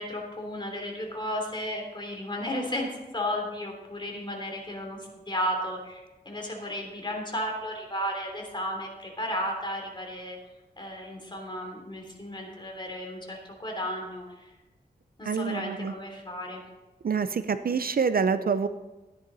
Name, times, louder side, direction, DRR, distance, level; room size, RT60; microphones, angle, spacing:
voice 1, 0.0-2.9 3.1-10.4 10.8-14.5 15.2-16.6, equal, 25° left, 0 dB, 3.4 m, -34 dB
voice 2, 15.2-15.9 17.0-18.7, right 5 dB, 55° right, 12 dB, 0.5 m, -26 dB
13.5 x 10.0 x 4.1 m, 1.1 s
wide cardioid pair, 75°, 18 cm